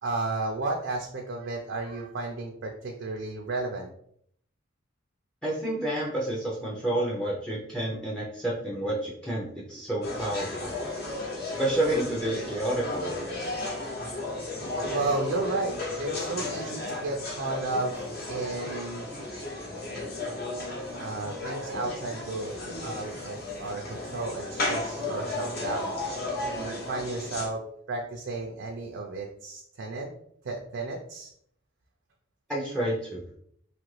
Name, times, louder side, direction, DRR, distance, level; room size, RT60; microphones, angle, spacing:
voice 1, 0.0-3.9 13.8-14.0 14.9-19.0 20.5-25.9 26.6-30.1 30.4-31.3, right 3 dB, 60° right, 1 dB, 0.4 m, -33 dB
voice 2, 5.4-10.8 11.6-13.1 32.5-33.2, right 1 dB, 5° left, -4 dB, 0.5 m, -29 dB
sound 1, 10.0-27.5, left 2 dB, 55° left, 1.0 m, -34 dB
3.0 x 2.4 x 3.1 m, 0.68 s
head